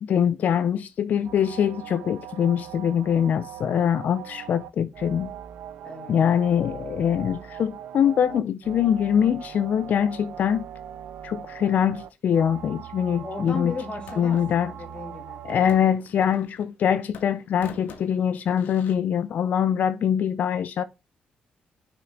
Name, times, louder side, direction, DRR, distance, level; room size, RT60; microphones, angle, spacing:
voice 1, 0.0-5.3 6.1-10.6 11.2-13.7 14.2-14.7 15.4-20.8, left 8 dB, 60° left, 0.5 m, -23 dB
sound 1, 1.2-15.8, right 10 dB, 85° right, 0.7 m, -40 dB
voice 2, 5.8-6.2 13.2-15.8, left 3 dB, 35° left, 2.3 m, -36 dB
sound 2, 13.5-14.5 15.5-16.8 17.1-18.9, left 6 dB, 85° left, 1.5 m, -46 dB
6.1 x 6.1 x 3.4 m
cardioid pair, 115°, 3 cm